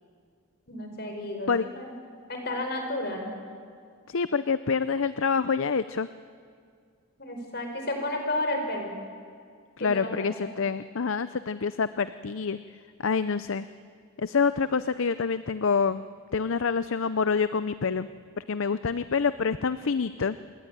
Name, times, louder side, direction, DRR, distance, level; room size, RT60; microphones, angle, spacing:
voice 1, 0.7-1.5 1.8-1.9 2.3-3.3 7.2-8.9 9.8-10.5, left 1 dB, 50° left, 4 dB, 4.9 m, -32 dB
voice 2, 4.1-6.1 9.8-12.6 13.0-13.7 14.2-16.0 16.3-18.1 18.4-20.4, left 5 dB, 65° left, 13 dB, 0.6 m, -27 dB
27.5 x 21.0 x 9.4 m, 2.1 s
head